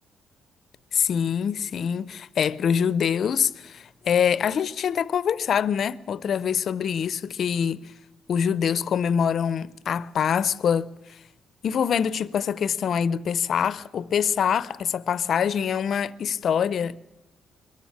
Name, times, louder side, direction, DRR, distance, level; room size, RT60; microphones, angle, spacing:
voice 1, 0.9-7.8 8.3-10.9 11.6-17.1, left 7 dB, 60° left, 0.6 m, -24 dB
22.0 x 14.5 x 8.7 m
cardioid pair, 90°, 0 cm